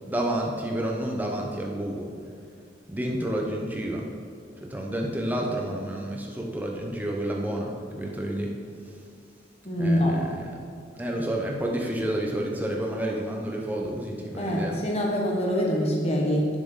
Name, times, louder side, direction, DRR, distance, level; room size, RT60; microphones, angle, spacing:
voice 1, 0.1-2.1 2.9-4.1 4.6-8.5 9.8-14.8, right 1 dB, 10° right, -1 dB, 1.0 m, -30 dB
voice 2, 9.6-10.2 14.4-16.5, equal, 35° left, -2 dB, 1.5 m, -24 dB
11.5 x 6.9 x 4.0 m, 2.2 s
head